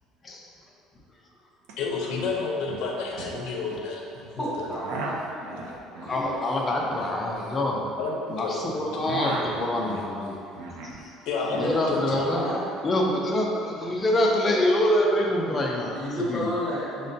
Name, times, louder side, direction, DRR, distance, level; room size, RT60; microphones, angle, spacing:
sound 1, 1.6-1.7 2.0-2.4 2.6-3.9 4.5-8.5 8.8-11.0 11.3-12.3, right 2 dB, 80° right, 0.4 m, -36 dB
voice 1, 1.8-4.3 4.5-4.8 8.0-8.8 11.3-12.4, left 4 dB, 60° left, -1 dB, 0.6 m, -30 dB
voice 2, 4.3-6.3 11.4-11.7 12.0-12.6 13.0-13.2 15.5-15.7 15.9-17.1, equal, ahead, -12 dB, 0.9 m, -32 dB
voice 3, 6.1-7.8 8.3-10.4 11.5-12.4 12.8-15.9 16.3-16.5, left 1 dB, 15° left, -2 dB, 0.4 m, -25 dB
6.3 x 2.1 x 2.6 m, 2.6 s
cardioid pair, 170°, 0 cm